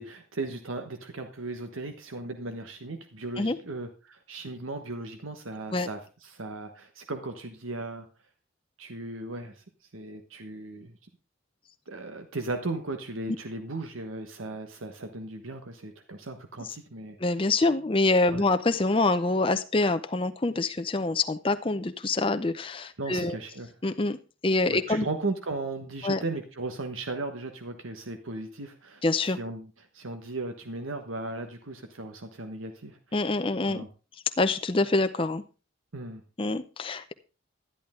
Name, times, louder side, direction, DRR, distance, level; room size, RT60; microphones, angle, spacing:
voice 1, 0.0-8.1 8.8-9.6 9.9-11.0 11.9-17.2 18.3-18.4 23.0-23.7 24.7-29.0 29.4-33.3 33.6-33.9 35.9-36.2, right 2 dB, 85° right, 6 dB, 1.3 m, -36 dB
voice 2, 17.2-23.4 23.8-24.2 24.4-25.1 26.0-26.2 29.0-29.4 33.1-33.9 34.4-35.4 36.4-37.1, left 2 dB, 25° left, 9 dB, 0.5 m, -25 dB
11.5 x 11.0 x 3.7 m, 0.34 s
head